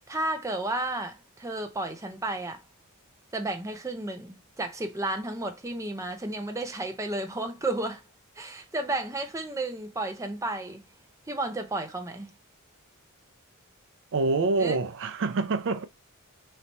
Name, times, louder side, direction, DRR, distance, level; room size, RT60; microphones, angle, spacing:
voice 1, 0.1-2.6 3.3-8.0 8.4-10.8 11.3-12.3 14.6-14.8, right 2 dB, 15° right, 0.6 m, -32 dB
voice 2, 14.1-15.8, right 3 dB, 60° right, 0.4 m, -26 dB
3.3 x 2.9 x 4.1 m
head